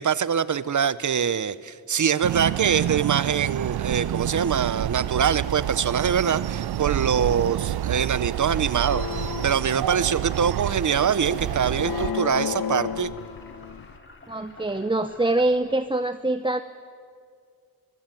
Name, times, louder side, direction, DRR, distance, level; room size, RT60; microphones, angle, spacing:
voice 1, 0.0-13.1, right 7 dB, 50° right, 17 dB, 0.8 m, -24 dB
sound 1, 2.2-12.1, right 12 dB, 85° right, 0.5 m, -28 dB
sound 2, 8.0-15.9, left 2 dB, 30° left, 2.5 m, -50 dB
sound 3, 8.9-14.0, left 7 dB, 70° left, 0.9 m, -33 dB
voice 2, 14.3-16.6, right 2 dB, 15° right, 10 dB, 0.7 m, -24 dB
24.5 x 21.0 x 9.1 m, 2.3 s
wide cardioid pair, 85°, 37 cm